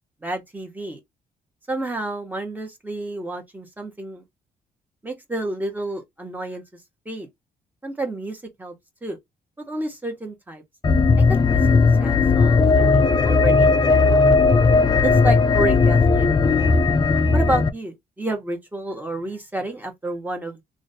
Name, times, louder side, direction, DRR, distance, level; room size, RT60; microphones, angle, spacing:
voice 1, 0.2-1.0 1.7-4.2 5.0-6.6 7.0-7.3 7.8-8.7 9.0-9.2 9.6-10.6 11.3-14.5 15.0-16.9 17.3-20.6, right 1 dB, 10° right, 1.3 m, -30 dB
sound 1, 10.8-17.7, left 4 dB, 25° left, 0.5 m, -17 dB
3.1 x 2.5 x 4.1 m
cardioid pair, 110°, 16 cm